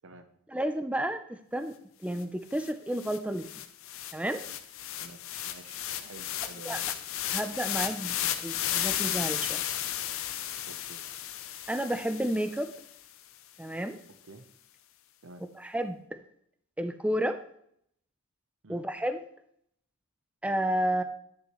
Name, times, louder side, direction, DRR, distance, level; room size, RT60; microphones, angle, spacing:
voice 1, 0.5-1.7 2.0-3.6 4.1-4.4 6.6-6.8 7.3-9.6 11.7-12.7 13.6-14.0 15.6-16.0 16.8-17.4 18.7-19.2 20.4-21.0, right 1 dB, 5° right, 8 dB, 0.5 m, -31 dB
sound 1, 2.2-2.3 2.5-12.9, left 11 dB, 65° left, 0.6 m, -34 dB
voice 2, 5.4-7.0 10.6-11.1 14.2-14.4 15.2-15.4 18.6-18.8, right 3 dB, 65° right, 8 dB, 0.7 m, -50 dB
10.5 x 6.6 x 3.1 m, 0.69 s
head